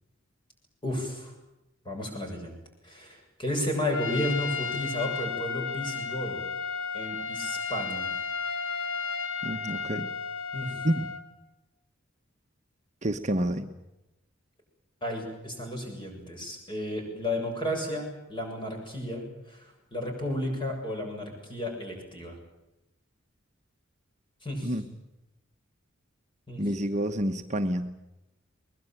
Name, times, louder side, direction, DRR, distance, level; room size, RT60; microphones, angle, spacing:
voice 1, 0.8-1.3 1.8-2.5 2.8-6.4 6.9-8.1 10.5-10.8 15.0-22.4 24.4-24.7 26.5-26.6, left 1 dB, 25° left, 2 dB, 7.7 m, -33 dB
Trumpet, 3.9-11.2, left 5 dB, 80° left, 2.2 m, -33 dB
voice 2, 9.4-10.1 10.8-11.1 13.0-13.7 24.6-24.9 26.6-27.9, right 1 dB, 35° right, 6 dB, 1.1 m, -28 dB
23.0 x 21.0 x 9.1 m, 0.93 s
head